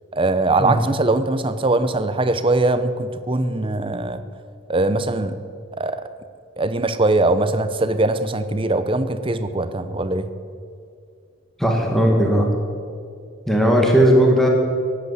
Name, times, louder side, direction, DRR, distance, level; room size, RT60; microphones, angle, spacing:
voice 1, 0.1-4.2 4.7-5.4 5.8-6.0 6.6-10.3, right 2 dB, 25° right, 11 dB, 0.7 m, -21 dB
voice 2, 11.6-12.5 13.5-14.5, equal, ahead, 0 dB, 1.7 m, -16 dB
16.5 x 8.2 x 9.5 m, 2.3 s
head